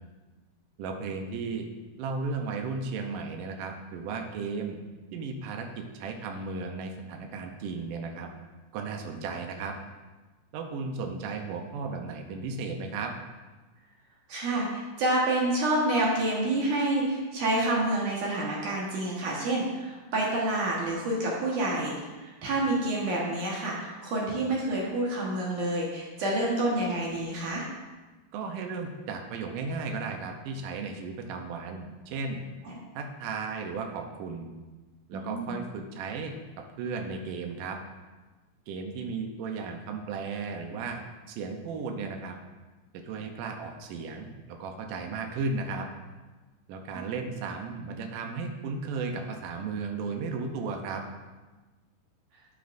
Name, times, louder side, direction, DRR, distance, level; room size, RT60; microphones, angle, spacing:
voice 1, 0.8-1.7 2.0-4.8 5.1-5.7 5.9-8.3 8.7-9.7 10.5-13.1 28.3-32.4 33.0-34.5 35.1-36.3 36.8-37.8 38.7-41.0 41.3-42.4 43.0-45.9 46.7-51.0, right 4 dB, 85° right, 3 dB, 1.9 m, -35 dB
voice 2, 14.3-27.7 32.7-32.8 35.1-35.6, right 1 dB, 60° right, -4 dB, 2.4 m, -28 dB
13.0 x 7.9 x 2.6 m, 1.2 s
omnidirectional pair, 4.9 m